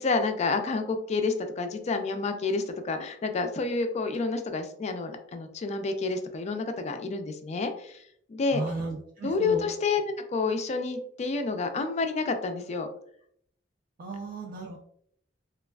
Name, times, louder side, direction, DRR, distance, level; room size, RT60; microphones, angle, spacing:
voice 1, 0.0-8.0 8.3-8.6 9.2-10.0 10.3-12.9, left 4 dB, 35° left, 7 dB, 0.3 m, -29 dB
voice 2, 8.5-9.6 14.0-14.8, right 2 dB, 45° right, 0 dB, 0.3 m, -35 dB
3.2 x 2.3 x 2.2 m, 0.66 s
head